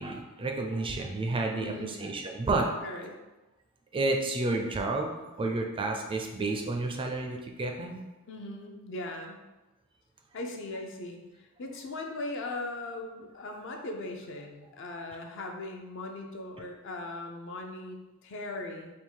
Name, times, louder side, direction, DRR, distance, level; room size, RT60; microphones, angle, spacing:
voice 1, 0.0-2.7 3.9-5.1 5.4-8.0, right 2 dB, 25° right, 2 dB, 0.4 m, -30 dB
voice 2, 1.6-2.1 2.8-3.2 8.3-9.4 10.3-18.9, left 2 dB, 60° left, 3 dB, 0.5 m, -39 dB
3.6 x 2.3 x 4.5 m, 1.1 s
head